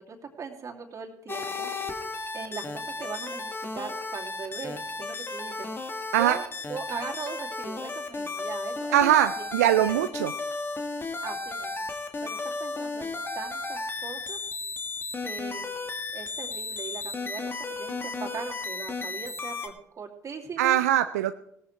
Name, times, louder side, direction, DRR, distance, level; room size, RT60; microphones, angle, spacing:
voice 1, 0.1-1.7 2.3-9.0 9.4-9.5 9.8-10.0 11.2-11.9 12.2-14.4 15.2-15.7 16.1-20.8, right 5 dB, 40° right, 1 dB, 2.7 m, -39 dB
sound 1, 1.3-19.7, left 3 dB, 25° left, 1.6 m, -34 dB
voice 2, 8.9-10.3 20.6-21.4, right 12 dB, 85° right, 11 dB, 0.4 m, -22 dB
18.0 x 13.5 x 3.3 m, 0.78 s
hypercardioid pair, 60°, 8 cm